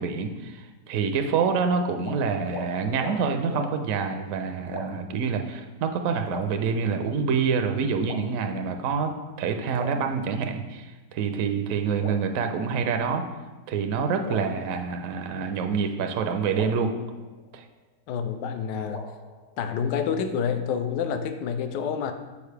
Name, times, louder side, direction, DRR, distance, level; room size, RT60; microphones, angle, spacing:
voice 1, 0.0-9.1 9.4-13.3 13.7-16.9 17.5-17.6, right 5 dB, 70° right, 6 dB, 0.8 m, -27 dB
sound 1, 2.0-2.2 2.5-2.7 3.0-3.2 3.5-3.7 4.7-5.1 6.3-7.1 8.0-8.8 9.8-10.7 12.0-13.1 14.2-15.4 16.5-18.0 18.9-20.1, left 2 dB, 45° left, 0.7 m, -41 dB
voice 2, 18.1-19.0 19.6-22.1, left 7 dB, 80° left, 8 dB, 1.2 m, -28 dB
6.8 x 4.8 x 3.3 m, 1.2 s
omnidirectional pair, 1.8 m